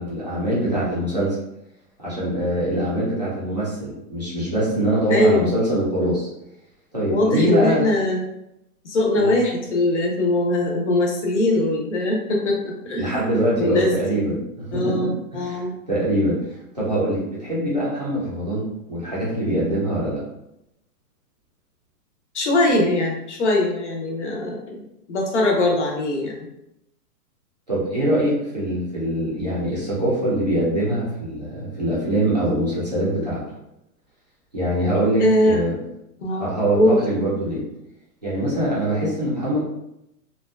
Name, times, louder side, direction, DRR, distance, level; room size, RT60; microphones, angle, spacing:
voice 1, 0.0-1.4 2.0-6.3 6.9-7.8 9.2-9.3 13.0-16.4 16.7-20.2 27.7-33.4 34.5-35.7 36.3-37.6 38.2-39.6, right 1 dB, 30° right, -8 dB, 0.5 m, -23 dB
voice 2, 5.1-5.5 7.1-8.2 8.8-13.3 13.6-14.2 14.7-15.7 22.3-24.8 25.1-26.5 35.2-35.6 36.2-37.0, left 1 dB, 50° left, 0 dB, 0.6 m, -21 dB
2.5 x 2.2 x 2.3 m, 0.85 s
hypercardioid pair, 180°, 47 cm